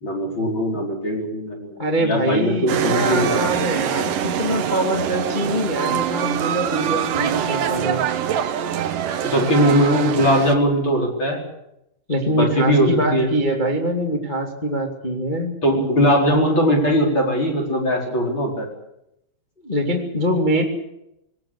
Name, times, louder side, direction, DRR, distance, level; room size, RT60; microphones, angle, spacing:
voice 1, 0.0-3.5 9.2-11.4 12.3-13.3 15.6-18.7, equal, 25° left, 0 dB, 4.8 m, -20 dB
voice 2, 1.8-8.0 12.1-15.6 19.6-20.6, right 1 dB, 70° left, 1 dB, 0.4 m, -23 dB
sound 1, 2.7-10.5, right 9 dB, 90° right, 1.8 m, -24 dB
20.5 x 19.0 x 8.5 m, 0.83 s
omnidirectional pair, 6.0 m